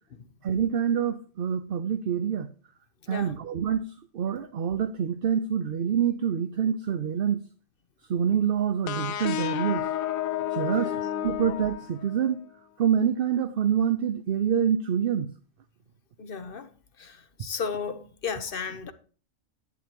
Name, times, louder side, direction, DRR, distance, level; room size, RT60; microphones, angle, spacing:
voice 1, 0.4-2.5 3.1-3.9 4.1-7.4 8.1-9.9 10.5-10.9 11.2-12.4 12.8-15.3, right 8 dB, 55° right, 0.7 m, -26 dB
sound 1, 8.9-12.4, left 11 dB, 90° left, 1.1 m, -31 dB
voice 2, 16.2-16.7 17.0-18.9, left 6 dB, 45° left, 1.0 m, -34 dB
11.0 x 9.3 x 2.9 m
omnidirectional pair, 1.4 m